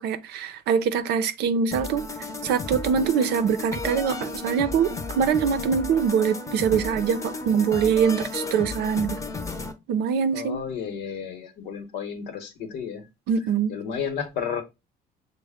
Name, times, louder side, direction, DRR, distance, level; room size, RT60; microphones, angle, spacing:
voice 1, 0.0-2.1 2.4-9.2 9.9-10.6 13.3-13.7, right 7 dB, 80° right, 0.6 m, -23 dB
sound 1, 1.7-9.7, left 3 dB, 20° left, 0.7 m, -33 dB
voice 2, 10.3-13.0 13.7-14.6, left 7 dB, 80° left, 1.0 m, -32 dB
6.3 x 2.1 x 3.5 m
cardioid pair, 110°, 17 cm